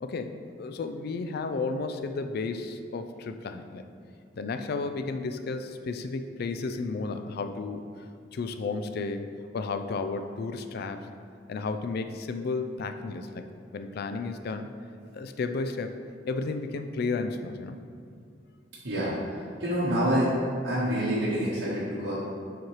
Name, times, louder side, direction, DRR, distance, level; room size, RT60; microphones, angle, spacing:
voice 1, 0.0-3.8 4.4-7.9 8.3-9.3 9.5-11.0 11.5-13.4 13.7-14.7 15.1-15.9 16.3-17.8, left 4 dB, 60° left, 8 dB, 0.4 m, -33 dB
voice 2, 18.8-20.3 20.6-22.2, equal, 85° right, -8 dB, 1.2 m, -27 dB
7.1 x 4.5 x 3.1 m, 2.3 s
head